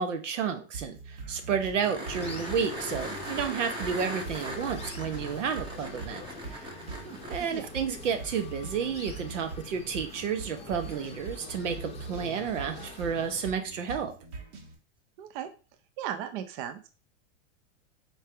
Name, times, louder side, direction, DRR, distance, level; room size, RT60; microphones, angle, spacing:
voice 1, 0.0-6.6 7.3-14.1, right 6 dB, 90° right, 7 dB, 1.1 m, -31 dB
sound 1, 0.7-14.7, right 4 dB, 65° right, 1.6 m, -43 dB
sound 2, 1.8-7.3 10.0-10.1, right 1 dB, 15° right, 0.8 m, -39 dB
sound 3, 2.1-13.5, left 5 dB, 15° left, 0.7 m, -45 dB
voice 2, 7.0-7.7 15.2-15.5 16.0-16.9, right 10 dB, 45° right, 9 dB, 0.6 m, -37 dB
4.6 x 3.4 x 3.3 m, 0.34 s
hypercardioid pair, 130°, 36 cm